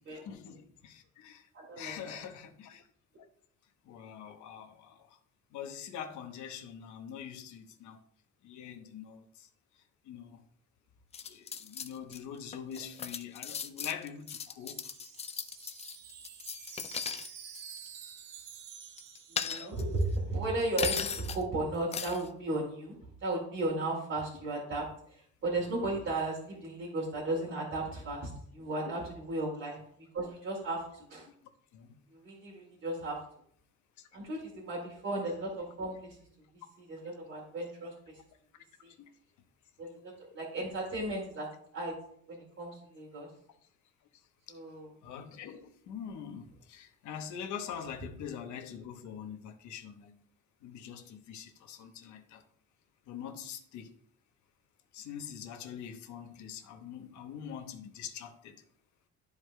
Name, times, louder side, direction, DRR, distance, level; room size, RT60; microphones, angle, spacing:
voice 1, 0.2-1.5 1.8-2.9 3.8-5.2 5.5-8.0 8.4-9.5 10.0-10.4 11.3-14.9 25.9-26.0 28.8-28.9 31.3-31.4 31.7-31.9 34.0-34.1 38.9-39.1 45.0-50.1 50.6-52.4 53.1-53.9 54.9-58.6, left 8 dB, 80° left, 1.0 m, -44 dB
voice 2, 1.5-2.2 19.3-31.3 32.1-33.2 34.1-36.2 36.9-38.2 38.8-38.9 39.8-41.9 42.3-43.3 44.5-44.9, right 2 dB, 45° right, 2.3 m, -35 dB
sound 1, 11.1-12.2 12.5-17.3 17.5-17.9 19.0-20.0 20.8-21.4 21.9-22.3, left 6 dB, 25° left, 0.3 m, -37 dB
Wind chime, 14.1-20.1, right 8 dB, 85° right, 0.8 m, -50 dB
12.5 x 4.8 x 2.2 m
cardioid pair, 145°, 29 cm